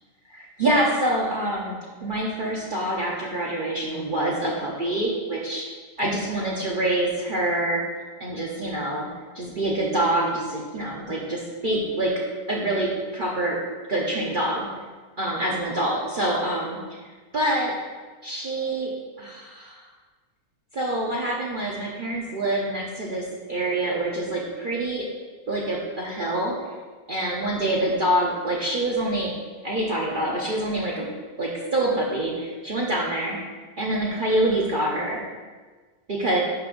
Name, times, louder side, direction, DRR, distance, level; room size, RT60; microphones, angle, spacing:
voice 1, 0.3-5.6 6.0-7.8 8.2-9.1 9.3-12.1 12.5-13.6 13.9-14.7 15.2-16.8 17.3-17.7 18.2-18.9 19.2-19.8 20.7-25.0 25.5-26.5 27.1-29.3 29.6-31.1 31.4-33.4 33.8-35.2 36.1-36.4, right 1 dB, 45° right, -4 dB, 0.7 m, -26 dB
10.5 x 5.3 x 2.5 m, 1.4 s
omnidirectional pair, 1.6 m